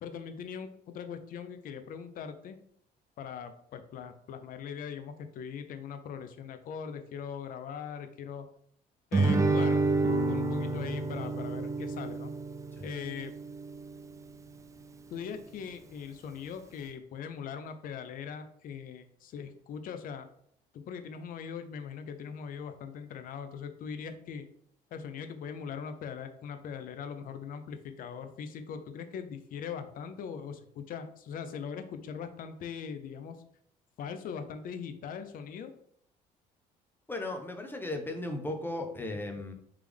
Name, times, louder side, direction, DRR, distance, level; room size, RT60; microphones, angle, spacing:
voice 1, 0.0-2.6 3.2-8.5 9.1-9.8 10.3-12.3 12.8-13.3 15.1-20.3 20.7-24.4 24.9-33.4 34.0-35.7, left 7 dB, 55° left, 8 dB, 0.5 m, -40 dB
Guitar, 9.1-14.2, right 3 dB, 20° right, 0.4 m, -29 dB
sound 1, 10.0-14.3, left 2 dB, 40° right, 1.0 m, -42 dB
voice 2, 37.1-39.5, left 2 dB, 10° left, 4 dB, 0.7 m, -36 dB
3.3 x 3.3 x 3.5 m, 0.66 s
cardioid pair, 110°, 17 cm